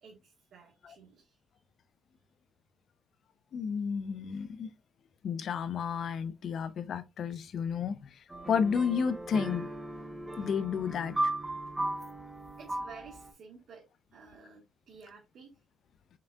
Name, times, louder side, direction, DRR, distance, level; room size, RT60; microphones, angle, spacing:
voice 1, 0.0-1.4 12.6-13.8 14.1-15.5, right 5 dB, 65° right, 1.5 m, -52 dB
voice 2, 3.5-4.7 5.2-8.2 8.5-9.7 10.4-11.2, left 6 dB, 60° left, 0.6 m, -31 dB
sound 1, 8.3-13.3, right 1 dB, 15° right, 0.9 m, -36 dB
5.7 x 3.7 x 2.3 m
cardioid pair, 90°, 0 cm